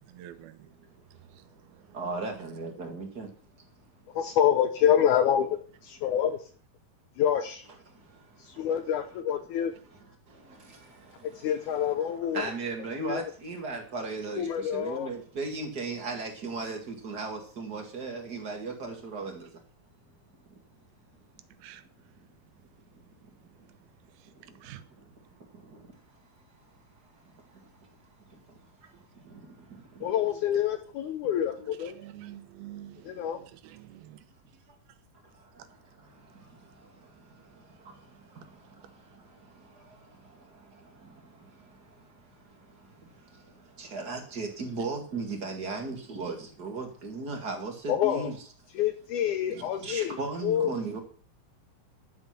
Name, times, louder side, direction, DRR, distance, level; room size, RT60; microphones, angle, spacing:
voice 1, 0.1-0.7 1.3-2.0 21.6-21.8 24.1-24.8 30.3-30.6 31.8-34.0, right 12 dB, 90° right, 2.8 m, -48 dB
voice 2, 1.9-3.3 7.9-8.8 9.8-19.5 23.2-23.3 24.5-24.6 25.0-25.9 27.2-27.9 28.3-30.1 30.6-30.8 31.5-31.9 35.3-48.4 49.5-51.0, right 3 dB, 35° right, 2.1 m, -39 dB
voice 3, 4.1-6.5 7.2-7.7 8.4-9.7 11.2-12.5 13.0-13.3 14.4-15.1 30.0-32.0 33.1-33.4 47.9-48.3 48.8-50.7, left 9 dB, 75° left, 1.9 m, -27 dB
11.5 x 7.8 x 5.9 m
omnidirectional pair, 4.2 m